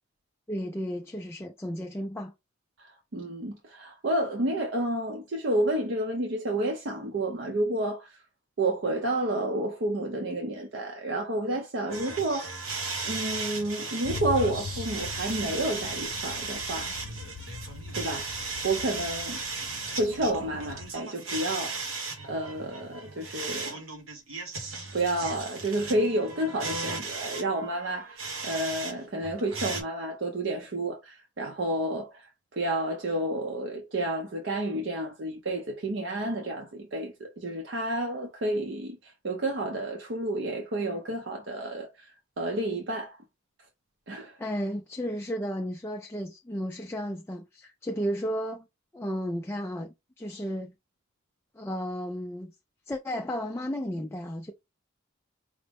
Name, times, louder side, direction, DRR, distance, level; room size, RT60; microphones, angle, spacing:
voice 1, 0.5-2.3 44.4-48.7 48.9-50.7 51.5-52.5 52.9-54.5, equal, 10° left, 0.3 m, -33 dB
voice 2, 2.8-8.2 8.6-12.5 13.0-16.9 17.9-19.4 19.9-21.8 22.2-23.8 24.9-43.2 44.1-44.4, right 1 dB, 60° right, 0.6 m, -30 dB
sound 1, 11.9-28.9 29.2-29.8, right 3 dB, 80° right, 1.1 m, -36 dB
sound 2, 14.0-20.9, left 5 dB, 80° left, 0.4 m, -41 dB
4.9 x 2.1 x 3.4 m
head